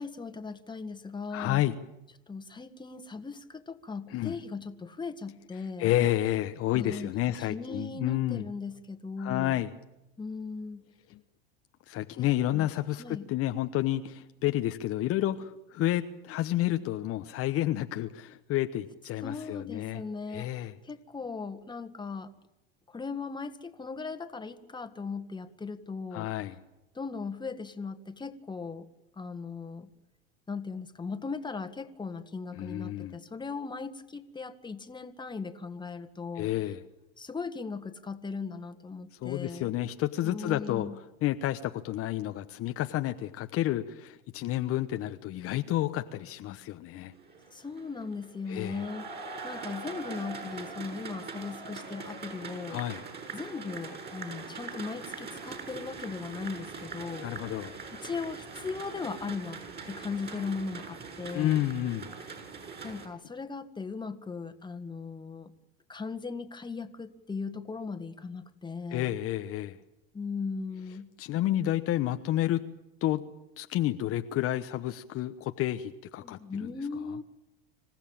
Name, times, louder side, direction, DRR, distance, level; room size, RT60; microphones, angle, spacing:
voice 1, 0.0-1.6 2.3-5.9 6.7-9.6 10.2-10.8 12.2-12.3 12.5-12.7 13.0-13.3 19.2-22.3 22.9-26.3 27.0-28.9 29.2-29.9 30.5-36.5 37.2-39.7 40.2-41.0 47.5-52.8 53.3-57.3 58.0-59.6 59.9-61.6 62.8-65.5 65.9-69.1 70.1-71.1 76.2-77.2, left 4 dB, 15° left, 9 dB, 1.9 m, -38 dB
voice 2, 1.3-1.8 4.1-4.4 5.8-8.5 9.2-9.7 11.1-11.2 11.9-20.0 20.3-20.7 26.1-26.6 32.5-33.2 36.4-36.8 39.2-47.1 48.5-48.9 52.7-53.0 57.2-57.7 61.3-62.1 68.9-69.8 71.2-72.6 73.0-73.2 73.6-76.7 77.1-77.2, left 14 dB, 50° left, 8 dB, 1.2 m, -30 dB
sound 1, 47.1-63.1, right 4 dB, 35° right, 6.8 m, -42 dB
26.5 x 15.0 x 8.9 m, 0.93 s
hypercardioid pair, 100°, 31 cm